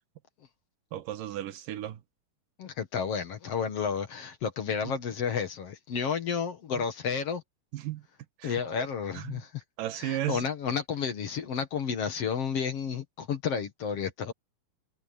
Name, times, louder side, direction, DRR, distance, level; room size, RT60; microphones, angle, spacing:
voice 1, 0.9-2.0 4.8-4.9 7.7-8.0 8.4-8.6 9.1-9.4 9.8-10.5, right 13 dB, 85° right, 2.9 m, -34 dB
voice 2, 2.6-7.4 8.4-9.6 9.9-14.3, left 6 dB, 55° left, 2.2 m, -31 dB
omnidirectional pair, 3.7 m